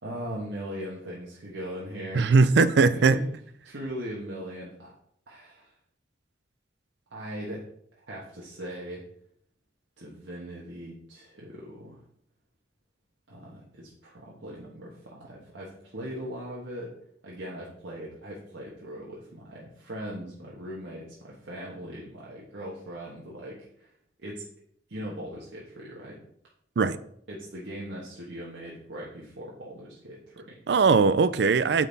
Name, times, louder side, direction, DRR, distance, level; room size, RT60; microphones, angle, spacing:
voice 1, 0.0-2.3 2.6-3.3 3.6-4.9 5.3-5.7 7.1-7.7 8.1-9.0 10.0-12.0 13.3-16.9 17.2-23.9 24.2-24.5 24.9-26.2 27.3-30.6, equal, 85° right, 1.4 m, -39 dB
voice 2, 2.1-3.2 26.8-27.0 30.7-31.9, right 4 dB, 65° right, 0.4 m, -20 dB
9.2 x 4.1 x 4.1 m
head